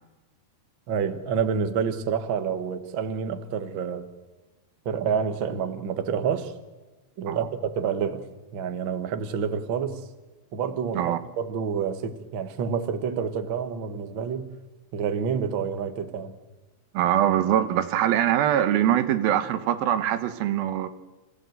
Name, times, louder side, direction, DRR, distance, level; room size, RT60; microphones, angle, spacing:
voice 1, 0.9-4.0 4.8-6.5 7.2-8.3 8.5-10.0 10.5-14.5 14.9-16.3, right 7 dB, 60° right, 1.3 m, -28 dB
voice 2, 16.9-20.9, right 11 dB, 90° right, 2.9 m, -23 dB
28.0 x 15.5 x 7.8 m
omnidirectional pair, 4.1 m